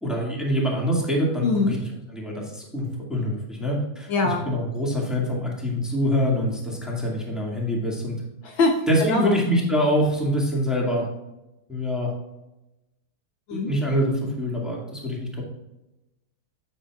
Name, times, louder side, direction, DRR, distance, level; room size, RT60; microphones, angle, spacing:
voice 1, 0.0-1.8 2.1-8.2 8.9-11.1 11.7-12.1 13.5-15.4, equal, ahead, -3 dB, 1.9 m, -25 dB
voice 2, 1.4-1.8 4.1-4.4 8.4-8.7 9.0-9.3 13.5-13.7, left 3 dB, 65° left, 2 dB, 1.7 m, -22 dB
9.1 x 8.8 x 2.5 m, 0.96 s
omnidirectional pair, 2.4 m